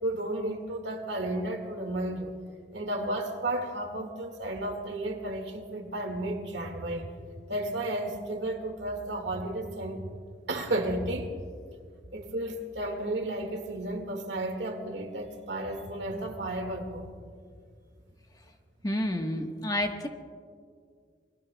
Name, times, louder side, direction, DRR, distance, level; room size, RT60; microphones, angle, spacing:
voice 1, 0.0-2.4 2.7-10.1 10.5-11.3 12.1-17.1, right 1 dB, 90° right, 4 dB, 1.9 m, -33 dB
voice 2, 18.8-20.1, left 1 dB, 20° left, 3 dB, 1.2 m, -29 dB
28.0 x 22.5 x 2.3 m, 2.1 s
head